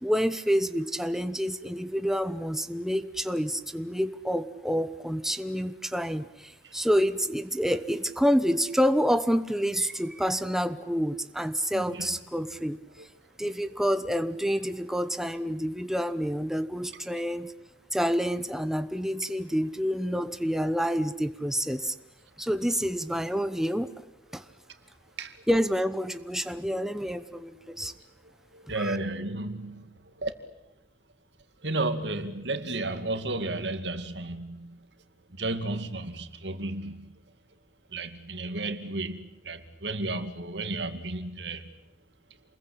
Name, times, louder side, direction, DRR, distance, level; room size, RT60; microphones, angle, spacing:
voice 1, 0.0-12.8 13.4-17.5 17.9-21.9 22.4-23.9 24.3-24.4 25.5-27.9 28.8-29.0, equal, ahead, 10 dB, 1.0 m, -28 dB
voice 2, 11.7-12.1 13.0-13.1 13.7-13.8 25.2-25.4 28.5-29.9 30.2-30.3 31.6-34.8 35.4-37.1 37.9-39.2 39.4-41.7, right 2 dB, 85° right, 9 dB, 2.3 m, -33 dB
28.0 x 21.5 x 8.7 m, 0.93 s
head